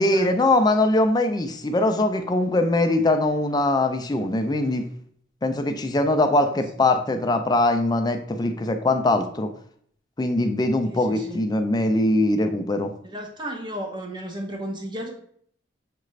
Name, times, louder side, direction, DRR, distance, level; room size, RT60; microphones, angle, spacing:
voice 1, 0.0-4.9 5.4-9.5 10.2-12.9, left 2 dB, 20° left, 6 dB, 0.4 m, -22 dB
voice 2, 10.8-11.4 13.0-15.1, right 1 dB, 25° right, 1 dB, 0.8 m, -34 dB
6.6 x 2.5 x 3.1 m, 0.62 s
head